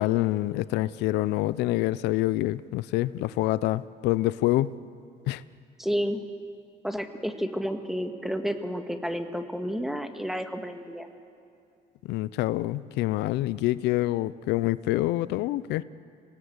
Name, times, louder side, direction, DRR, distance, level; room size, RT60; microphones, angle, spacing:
voice 1, 0.0-4.7 5.3-5.4 12.0-15.8, left 16 dB, 85° left, 17 dB, 0.5 m, -26 dB
voice 2, 5.8-6.2 6.8-11.1, equal, ahead, 6 dB, 1.7 m, -31 dB
26.5 x 18.5 x 8.0 m, 2.4 s
cardioid pair, 110°, 17 cm